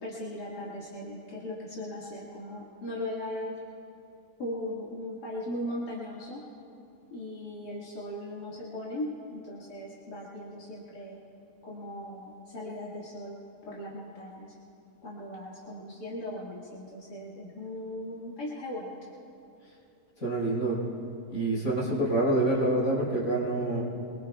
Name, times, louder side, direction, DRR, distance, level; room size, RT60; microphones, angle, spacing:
voice 1, 0.0-3.6 4.4-6.4 7.1-11.2 11.6-13.4 13.7-14.5 15.0-18.9, left 1 dB, 85° left, -6 dB, 2.5 m, -38 dB
voice 2, 20.2-20.8 21.3-23.8, right 2 dB, 55° left, -6 dB, 5.0 m, -26 dB
24.5 x 22.5 x 2.3 m, 2.7 s
omnidirectional pair, 1.7 m